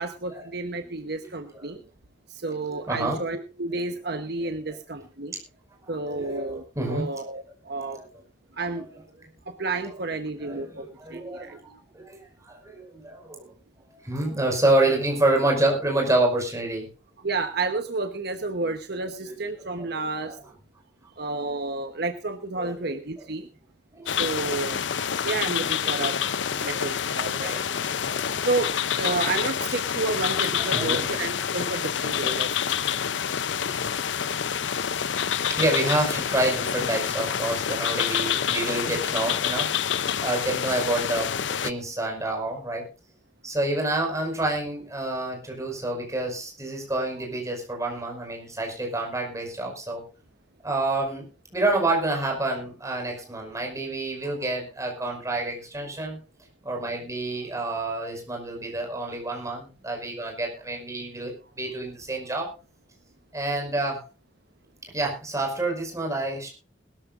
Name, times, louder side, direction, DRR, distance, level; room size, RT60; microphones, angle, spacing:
voice 1, 0.0-1.8 2.3-5.4 5.9-8.0 8.6-8.8 9.5-10.8 11.1-11.6 17.2-20.4 21.2-23.5 24.1-24.8 25.2-26.2 26.6-27.8 28.4-32.5 38.6-38.8 54.4-54.5, right 3 dB, 60° right, 7 dB, 1.1 m, -31 dB
voice 2, 2.7-3.2 4.1-4.2 4.7-4.8 5.8-7.1 7.9-8.1 8.6-9.0 10.4-13.5 14.0-16.9 19.2-19.9 20.2-20.3 22.6-22.9 23.9-24.2 25.6-26.8 27.1-28.5 29.0-29.2 30.5-31.1 35.5-39.7 40.2-41.3 41.6-42.9 43.4-50.0 50.6-51.3 51.5-56.2 56.6-62.5 63.3-64.0 64.9-66.5, right 2 dB, 15° right, 0 dB, 5.5 m, -28 dB
sound 1, 24.1-41.7, left 8 dB, 80° left, 0.6 m, -27 dB
21.0 x 13.5 x 2.6 m, 0.31 s
head